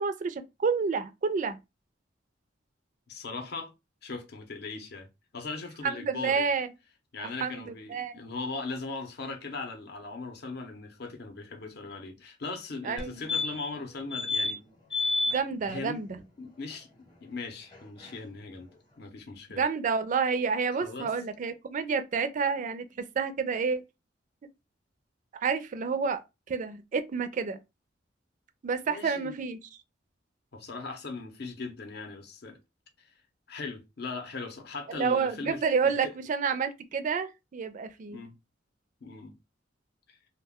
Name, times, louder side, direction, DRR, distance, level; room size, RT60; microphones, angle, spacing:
voice 1, 0.0-1.6 5.8-6.7 7.2-8.1 12.8-13.2 15.3-16.2 19.6-23.8 25.3-26.2 26.5-27.6 28.6-29.6 34.9-38.2, right 5 dB, 45° right, 0.4 m, -29 dB
voice 2, 3.1-3.7 4.0-5.1 5.3-6.5 7.1-14.6 14.9-15.3 15.7-16.0 16.4-16.9 17.2-18.7 19.0-19.6 20.8-21.1 28.9-29.4 30.5-32.6 33.5-36.1 38.1-38.3 39.0-39.4 40.1-40.2, left 3 dB, 60° left, 0.7 m, -39 dB
sound 1, 13.0-13.1 13.3-13.8 14.1-14.5 14.9-15.4 17.7-17.8 18.0-18.1, left 3 dB, 25° left, 0.8 m, -29 dB
2.2 x 2.1 x 3.5 m
head